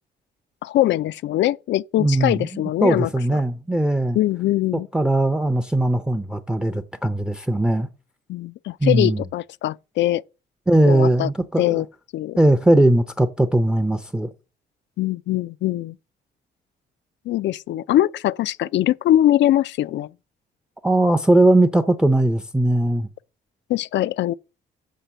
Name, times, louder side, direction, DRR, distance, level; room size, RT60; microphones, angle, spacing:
voice 1, 0.6-3.1 4.1-4.9 8.3-10.2 10.9-11.3 11.6-11.9 12.1-12.4 15.0-16.0 17.3-20.1 23.7-24.3, left 13 dB, 65° left, 0.4 m, -22 dB
voice 2, 2.0-4.2 4.9-7.9 8.8-9.2 10.7-11.8 12.4-14.3 20.8-23.1, right 1 dB, 5° right, 0.5 m, -19 dB
7.4 x 4.0 x 6.7 m
cardioid pair, 90°, 20 cm